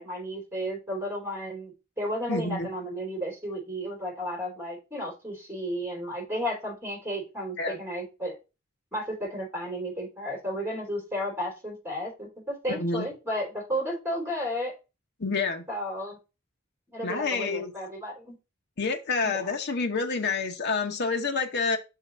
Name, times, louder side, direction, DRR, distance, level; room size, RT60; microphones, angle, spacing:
voice 1, 0.0-8.3 8.9-14.7 15.7-16.2 16.9-18.4 19.2-19.5, equal, 10° right, 3.2 m, -33 dB
voice 2, 2.3-2.7 7.6-7.8 12.7-13.1 15.2-15.6 17.0-17.7 18.8-21.8, left 4 dB, 55° left, 1.0 m, -28 dB
5.9 x 3.8 x 5.4 m
head